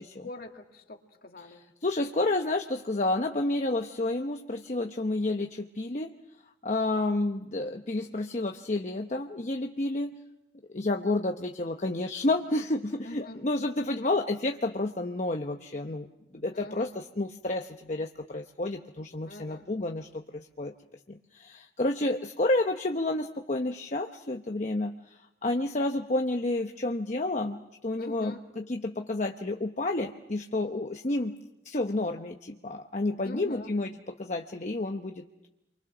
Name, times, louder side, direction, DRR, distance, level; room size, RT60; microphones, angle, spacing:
voice 1, 0.2-1.6 13.0-13.4 16.5-16.9 19.3-19.6 28.0-28.4 33.2-33.7, left 2 dB, 55° left, 3 dB, 2.3 m, -43 dB
voice 2, 1.4-6.2 6.6-10.2 10.7-16.1 16.3-20.7 21.1-31.3 31.6-35.5, left 2 dB, 40° left, 4 dB, 0.9 m, -30 dB
30.0 x 24.0 x 6.1 m, 0.93 s
head